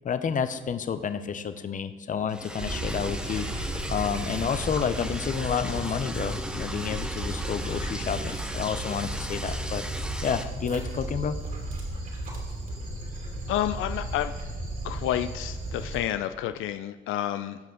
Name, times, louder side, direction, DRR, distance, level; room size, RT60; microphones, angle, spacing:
voice 1, 0.0-9.8 10.2-11.4, left 7 dB, 40° left, 11 dB, 0.7 m, -30 dB
Liquid, 2.3-10.4, equal, 5° right, 0.7 m, -37 dB
Dog, 2.6-16.0, right 1 dB, 45° right, 2.6 m, -34 dB
voice 2, 13.5-14.3 14.8-17.6, left 12 dB, 85° left, 11 dB, 0.4 m, -29 dB
15.5 x 5.7 x 3.8 m, 1.4 s
cardioid pair, 90°, 20 cm